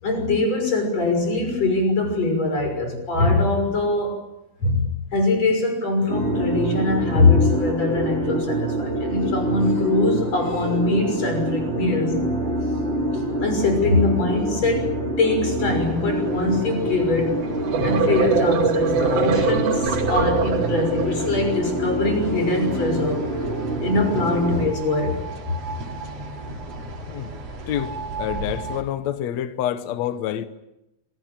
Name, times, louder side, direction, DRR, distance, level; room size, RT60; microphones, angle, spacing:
voice 1, 0.0-4.2 4.6-12.2 13.1-14.9 15.2-17.4 17.8-23.2 23.8-25.2, left 3 dB, 40° left, 4 dB, 7.2 m, -22 dB
sound 1, 6.1-24.7, right 1 dB, 15° right, 3.5 m, -26 dB
sound 2, 15.8-28.8, right 2 dB, 45° right, 3.8 m, -36 dB
sound 3, 17.4-21.3, right 5 dB, 70° right, 4.5 m, -23 dB
voice 2, 27.7-30.5, left 11 dB, 75° left, 11 dB, 1.6 m, -27 dB
25.5 x 18.5 x 8.9 m, 0.91 s
omnidirectional pair, 4.4 m